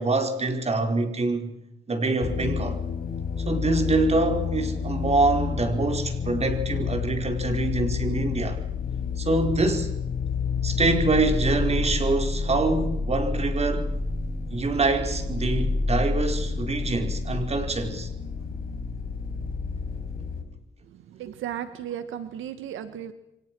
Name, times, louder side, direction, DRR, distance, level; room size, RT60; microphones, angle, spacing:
voice 1, 0.0-1.5 1.9-2.8 3.5-8.6 9.2-10.0 10.6-13.9 14.5-18.1, right 2 dB, 30° right, 4.8 m, -25 dB
sound 1, 2.2-20.4, left 4 dB, 45° left, 5.1 m, -29 dB
voice 2, 20.9-23.1, right 10 dB, 80° right, 1.6 m, -35 dB
29.0 x 24.5 x 6.2 m
cardioid pair, 90°, 20 cm